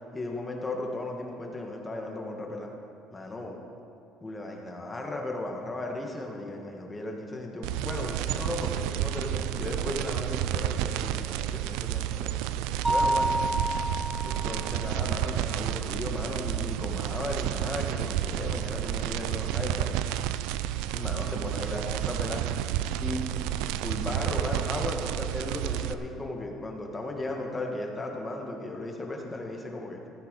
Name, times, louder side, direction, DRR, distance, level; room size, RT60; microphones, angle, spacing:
voice 1, 0.1-2.7 3.1-3.6 4.2-12.3 12.9-13.3 13.9-14.0 14.2-19.9 20.9-22.5 23.0-23.3 23.8-30.0, left 2 dB, 15° left, 1 dB, 1.5 m, -36 dB
sound 1, 7.6-25.9, right 12 dB, 85° right, 0.4 m, -30 dB
Mallet percussion, 12.8-14.6, right 1 dB, 10° right, 0.5 m, -28 dB
15.5 x 9.4 x 5.3 m, 2.5 s
cardioid pair, 140°, 0 cm